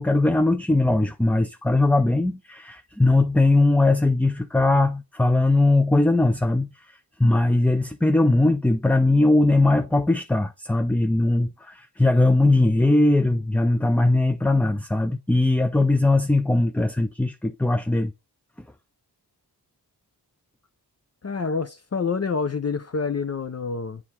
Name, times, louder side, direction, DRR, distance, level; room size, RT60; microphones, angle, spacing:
voice 1, 0.0-6.7 7.2-18.1, left 2 dB, 5° left, 0.5 m, -20 dB
voice 2, 21.2-24.0, left 5 dB, 40° left, 0.7 m, -27 dB
7.8 x 3.7 x 4.4 m
wide cardioid pair, 70°, 40 cm